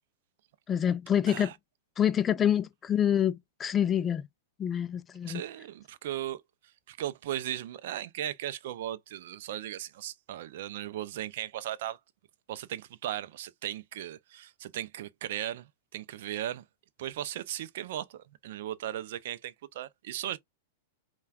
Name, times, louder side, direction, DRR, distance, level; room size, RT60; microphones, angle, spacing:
voice 1, 0.7-1.5 2.0-4.3 4.6-5.4, left 9 dB, 20° left, 0.3 m, -27 dB
voice 2, 5.3-6.4 6.9-12.0 12.5-16.6 17.0-20.4, right 12 dB, 65° right, 0.4 m, -37 dB
5.5 x 2.3 x 2.3 m
hypercardioid pair, 120°, 0 cm